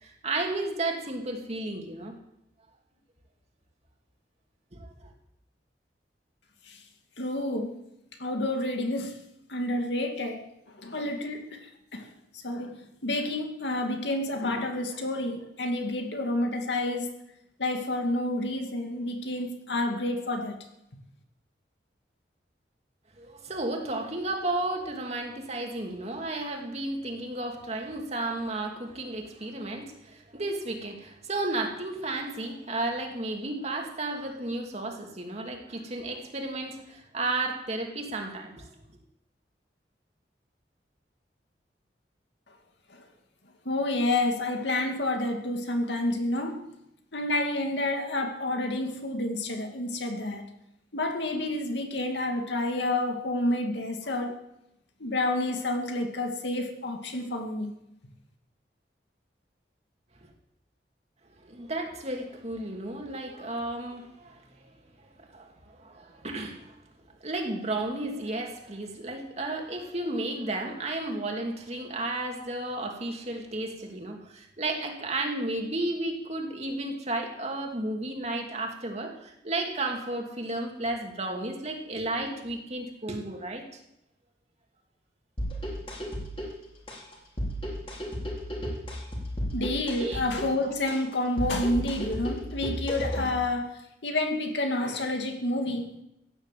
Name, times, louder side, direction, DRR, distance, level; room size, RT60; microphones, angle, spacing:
voice 1, 0.0-2.1 4.7-5.1 23.2-38.7 61.4-64.4 65.0-66.8 67.2-83.6 90.0-90.2, right 2 dB, 40° right, 2 dB, 2.5 m, -33 dB
voice 2, 7.2-7.8 8.2-9.1 9.5-11.6 11.9-12.1 12.4-12.8 13.0-17.1 17.6-20.6 42.9-43.0 43.7-46.6 47.1-50.4 50.9-54.4 55.0-57.7 89.5-95.9, left 1 dB, 80° left, 4 dB, 2.3 m, -29 dB
sound 1, 85.4-93.4, equal, 30° left, 3.7 m, -34 dB
16.0 x 9.8 x 7.6 m, 0.83 s
head